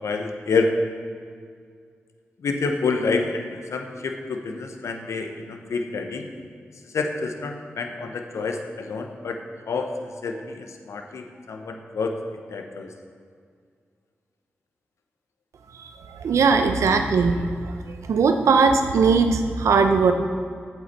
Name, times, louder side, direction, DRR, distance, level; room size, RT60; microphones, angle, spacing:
voice 1, 0.0-0.7 2.4-6.3 6.8-9.4 9.7-12.1 12.5-12.9, left 4 dB, 75° left, 5 dB, 0.8 m, -28 dB
voice 2, 16.2-17.5 18.1-20.1, right 5 dB, 85° right, 6 dB, 0.6 m, -19 dB
8.2 x 8.1 x 4.2 m, 2.1 s
supercardioid pair, 40°, 5 cm